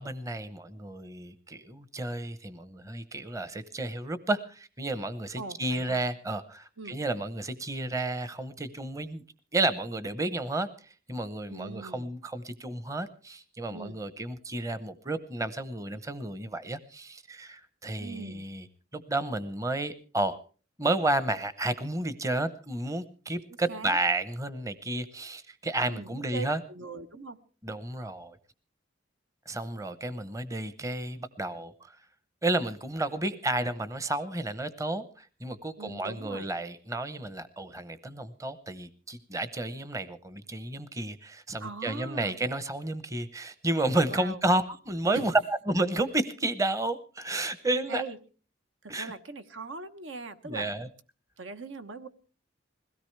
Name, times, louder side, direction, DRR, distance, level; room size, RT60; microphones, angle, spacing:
voice 1, 0.0-9.2 9.5-10.7 11.1-18.7 18.9-20.4 20.8-26.6 27.6-28.4 29.5-31.9 32.4-45.3 45.7-48.0 48.9-49.1 50.4-50.9, right 2 dB, 15° right, 13 dB, 0.8 m, -31 dB
voice 2, 5.4-6.0 6.8-7.0 11.5-12.1 13.7-14.0 18.0-18.4 23.7-24.0 25.9-27.4 35.8-36.5 41.6-42.4 44.1-44.4 45.1-45.3 47.9-48.2 48.8-50.7 51.4-52.1, right 4 dB, 80° right, 10 dB, 1.1 m, -40 dB
21.5 x 17.0 x 3.2 m, 0.37 s
head